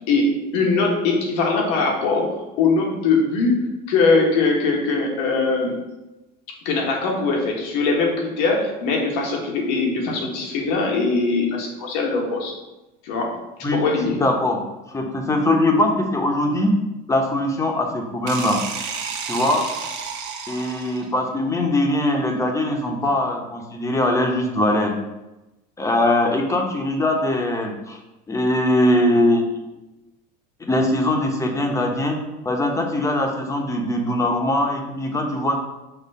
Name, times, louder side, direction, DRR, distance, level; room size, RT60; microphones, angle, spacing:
voice 1, 0.1-3.6 3.9-5.7 6.7-12.5 13.0-14.2 20.6-20.7, left 3 dB, 80° left, 0 dB, 1.7 m, -21 dB
voice 2, 13.6-14.6 14.9-16.7 17.1-18.6 19.3-19.7 20.5-24.9 25.8-28.0 28.3-29.5 30.6-35.6, left 1 dB, 15° left, 2 dB, 1.0 m, -21 dB
sound 1, 18.3-21.2, right 6 dB, 65° right, 1.1 m, -31 dB
6.5 x 3.2 x 5.5 m, 1.0 s
cardioid pair, 130°, 20 cm